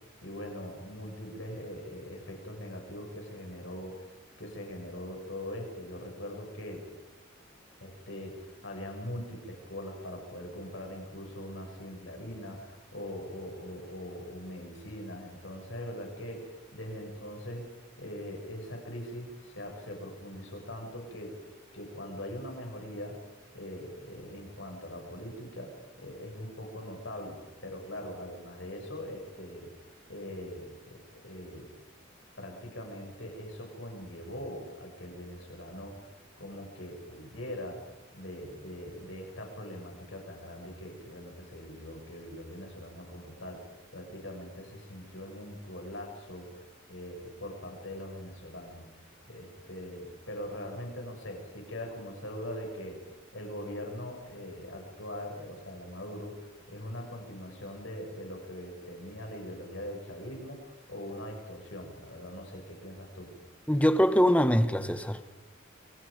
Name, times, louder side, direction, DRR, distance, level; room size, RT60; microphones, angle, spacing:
voice 1, 0.2-4.1 4.4-6.8 7.8-16.4 16.7-17.7 18.0-21.4 21.7-23.2 23.5-29.7 30.1-31.7 32.4-36.1 36.4-37.8 38.1-43.6 43.9-48.9 49.3-63.3, left 1 dB, 65° left, 6.6 m, -41 dB
voice 2, 63.7-65.2, equal, 5° left, 1.2 m, -23 dB
29.0 x 23.0 x 5.2 m
head